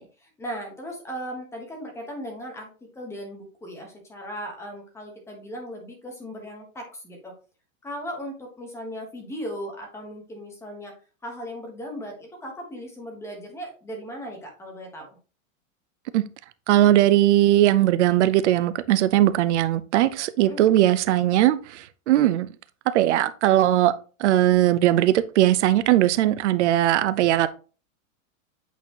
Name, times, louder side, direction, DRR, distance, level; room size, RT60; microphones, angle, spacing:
voice 1, 0.0-7.4 7.8-10.9 11.2-15.2 20.4-20.8, equal, 5° left, 1.2 m, -37 dB
voice 2, 16.7-22.5 22.9-23.9 24.2-27.5, right 13 dB, 60° right, 0.7 m, -19 dB
8.2 x 4.2 x 3.0 m
supercardioid pair, 165°, 40 cm